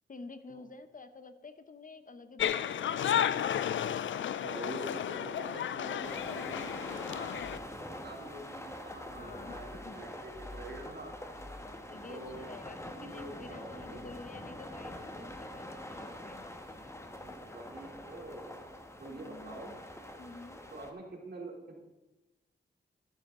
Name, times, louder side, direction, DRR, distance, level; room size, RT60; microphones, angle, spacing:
voice 1, 0.1-3.3 9.2-10.0 11.6-16.5 19.1-19.8 20.2-20.6, left 3 dB, 45° left, 10 dB, 0.9 m, -50 dB
sound 1, 2.4-7.6, left 9 dB, 90° left, 0.4 m, -33 dB
voice 2, 4.4-7.2 7.7-11.1 12.1-12.5 13.0-14.1 17.2-18.6 19.0-19.7 20.7-21.8, right 2 dB, 60° right, -2 dB, 3.2 m, -46 dB
sound 2, 6.0-20.9, left 1 dB, 15° left, 1.4 m, -45 dB
13.5 x 11.5 x 3.8 m, 1.1 s
cardioid pair, 75°, 19 cm